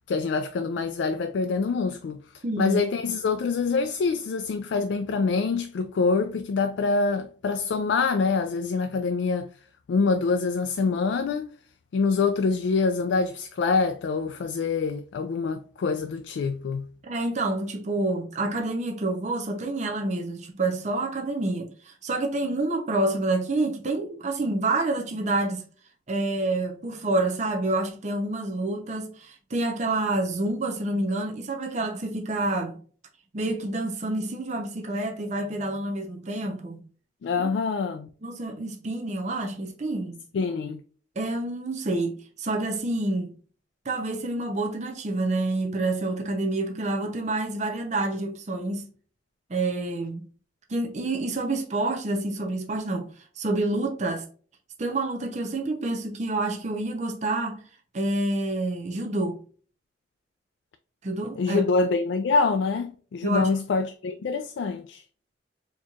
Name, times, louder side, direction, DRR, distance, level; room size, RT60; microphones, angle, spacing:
voice 1, 0.1-2.2 2.6-9.5 9.9-11.5 11.9-16.9 37.2-38.1 40.3-40.8 61.4-65.0, left 4 dB, 75° left, 0.3 m, -25 dB
voice 2, 2.4-2.8 17.0-25.6 26.1-32.8 33.3-36.8 37.4-37.5 38.2-40.2 41.2-43.3 43.8-48.9 49.5-50.3 50.7-54.3 54.8-57.6 57.9-59.4 61.0-61.6 63.2-63.5, right 2 dB, 40° right, 0.6 m, -28 dB
4.3 x 2.9 x 2.4 m
head